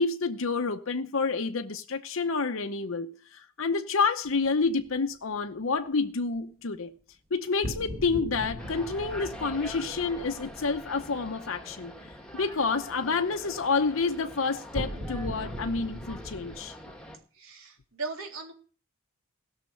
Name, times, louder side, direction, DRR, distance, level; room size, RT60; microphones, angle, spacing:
voice 1, 0.0-6.9 7.3-11.9 12.3-16.7, left 4 dB, 70° left, 0.8 m, -29 dB
sound 1, 4.2-4.8 7.6-11.9 14.7-16.6, equal, 40° right, 6.6 m, -39 dB
sound 2, 8.6-17.2, equal, 5° left, 1.8 m, -44 dB
voice 2, 17.3-18.5, right 4 dB, 80° right, 3.6 m, -38 dB
17.0 x 6.6 x 6.5 m
head